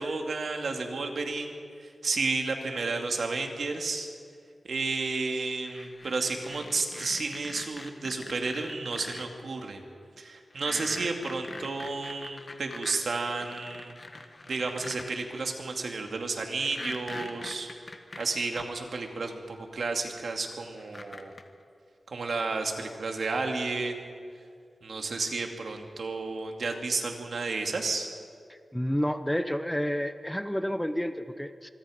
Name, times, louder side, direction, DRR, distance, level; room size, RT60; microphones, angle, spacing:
voice 1, 0.0-1.6 2.0-4.1 4.6-9.8 10.2-13.9 14.5-17.7 18.2-21.3 22.1-24.1 24.8-28.1, right 3 dB, 70° right, 3 dB, 2.4 m, -32 dB
sound 1, 5.7-9.3 10.5-15.1 16.6-18.6 19.8-19.9 20.8-21.4, left 2 dB, 40° left, 1.6 m, -43 dB
voice 2, 28.5-31.7, equal, 5° left, 10 dB, 0.7 m, -30 dB
25.0 x 23.5 x 5.1 m, 2.2 s
wide cardioid pair, 105°, 0 cm